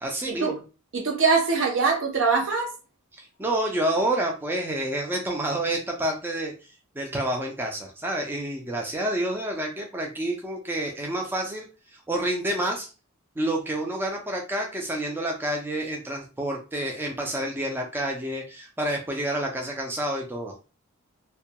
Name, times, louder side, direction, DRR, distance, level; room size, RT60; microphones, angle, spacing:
voice 1, 0.0-0.5 3.2-6.5 7.0-12.9 13.4-20.5, right 1 dB, 10° right, 0.3 m, -29 dB
voice 2, 0.9-2.7, right 4 dB, 60° right, 0.6 m, -23 dB
2.2 x 2.2 x 2.7 m
head